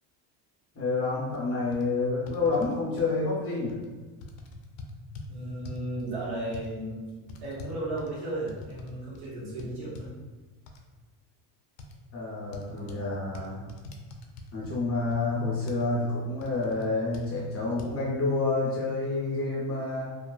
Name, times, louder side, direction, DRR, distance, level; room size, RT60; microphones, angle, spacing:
voice 1, 0.7-3.8 12.1-13.6 14.5-20.1, left 3 dB, 30° left, -6 dB, 0.6 m, -29 dB
sound 1, 1.3-1.4 1.7-1.8 2.3-3.1 3.7-3.9 4.2-5.3 5.6-5.9 6.5-6.7 7.3-8.9 9.1-9.3 9.6-10.1 10.7-10.8 11.8-11.9 12.5-13.0 13.3-14.8 15.1-15.2 15.7-15.8 16.4-16.8 17.1-17.3 17.8-17.9, left 3 dB, 80° left, 0.5 m, -43 dB
voice 2, 5.3-7.0 7.2-10.1 12.7-12.9, right 1 dB, 60° right, -6 dB, 1.0 m, -35 dB
2.8 x 2.4 x 2.3 m, 1.2 s
cardioid pair, 150°, 44 cm